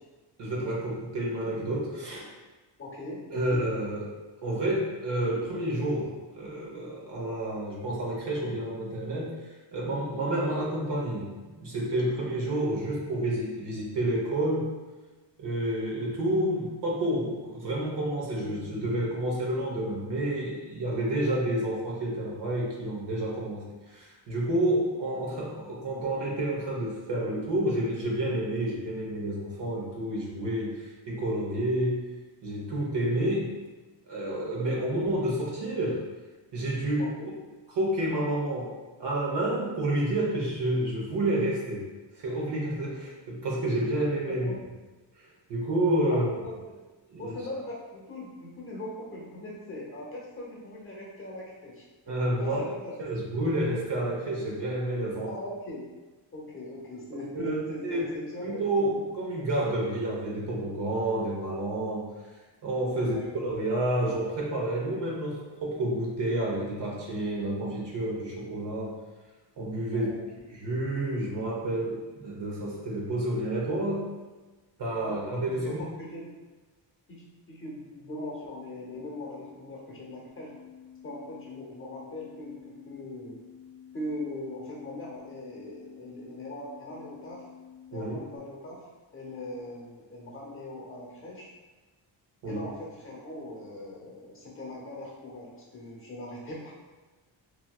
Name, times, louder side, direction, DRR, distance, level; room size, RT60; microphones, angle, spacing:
voice 1, 0.4-2.3 3.3-4.1 4.4-9.3 9.7-14.7 15.4-23.6 23.9-32.0 32.4-33.5 34.1-36.0 36.5-37.1 37.8-38.7 39.0-41.9 42.2-44.5 45.5-46.3 47.1-47.3 52.1-52.6 53.0-55.3 57.3-58.1 58.4-62.1 62.6-69.0 69.6-70.1 70.5-74.1 74.8-75.8 87.9-88.2 92.4-92.6, right 1 dB, 60° right, -3 dB, 1.0 m, -29 dB
voice 2, 2.8-3.6 21.1-21.3 37.0-37.3 44.3-44.6 46.1-46.2 46.4-46.6 47.2-52.9 55.2-55.8 56.3-58.6 62.9-63.4 69.9-70.2 75.0-76.3 77.1-80.5 81.0-83.4 83.9-87.4 87.9-88.8 89.1-91.5 92.4-96.7, left 1 dB, 30° left, -4 dB, 0.7 m, -40 dB
sound 1, 80.3-88.4, left 8 dB, ahead, 0.4 m, -50 dB
2.9 x 2.7 x 2.2 m, 1.2 s
wide cardioid pair, 130°, 46 cm